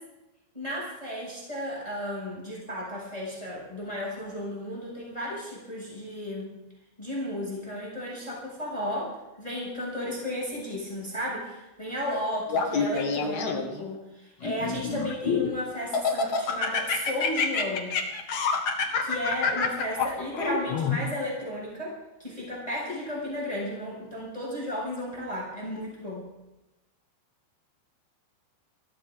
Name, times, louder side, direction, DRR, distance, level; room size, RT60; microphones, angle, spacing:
voice 1, 0.5-6.6 7.0-17.9 19.0-26.3, left 1 dB, 5° left, -4 dB, 6.8 m, -34 dB
Laughter, 12.5-13.8 14.4-15.5 15.9-21.0, left 5 dB, 50° left, 2.5 m, -27 dB
22.0 x 16.0 x 3.9 m, 0.99 s
omnidirectional pair, 5.7 m